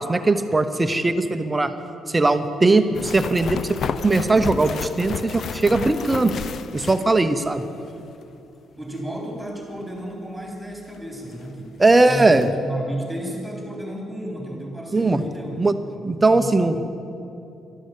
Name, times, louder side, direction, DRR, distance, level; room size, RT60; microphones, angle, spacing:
voice 1, 0.0-1.7 2.1-2.8 3.1-3.8 4.0-6.3 6.7-7.6 11.8-12.5 14.9-15.2 15.6-15.7 16.0-16.8, right 2 dB, 20° right, 9 dB, 0.9 m, -19 dB
voice 2, 2.7-3.0 8.8-11.8 12.1-15.6 15.9-16.8, right 1 dB, 5° right, 0 dB, 4.0 m, -33 dB
sound 1, 2.9-7.6 7.9-8.0 10.9-11.0 11.4-11.5 11.8-12.5, left 6 dB, 60° left, 0.6 m, -32 dB
12.5 x 12.5 x 8.6 m, 2.8 s
cardioid pair, 90°, 0 cm